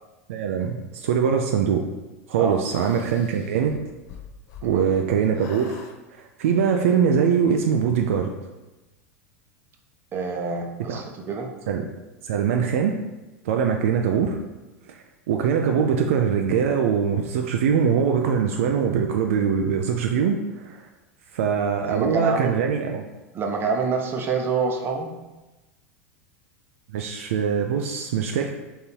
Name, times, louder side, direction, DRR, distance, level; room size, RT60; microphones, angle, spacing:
voice 1, 0.3-1.8 2.3-3.8 4.6-5.8 6.1-8.3 10.9-11.0 11.7-11.9 12.2-12.9 13.4-14.4 14.9-20.9 21.3-23.0 26.9-28.5, right 7 dB, 65° right, 3 dB, 0.4 m, -22 dB
sound 1, 2.6-5.1 5.3-6.0, left 6 dB, 40° left, 0.6 m, -44 dB
voice 2, 10.1-11.5 21.8-22.6 23.3-25.1, right 4 dB, 30° right, 2 dB, 0.7 m, -26 dB
3.8 x 2.7 x 4.4 m, 1.1 s
figure-of-eight pair, 85°, 8 cm